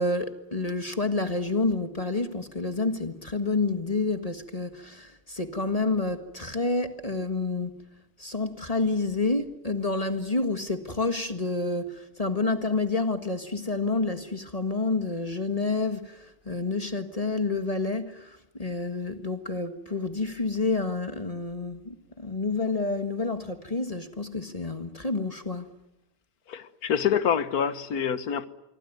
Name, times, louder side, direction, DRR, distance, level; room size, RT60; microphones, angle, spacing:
voice 1, 0.0-7.8 8.2-25.7, left 3 dB, 20° left, 1.4 m, -29 dB
voice 2, 26.5-28.4, left 8 dB, 50° left, 1.6 m, -26 dB
26.0 x 24.0 x 9.4 m
omnidirectional pair, 2.3 m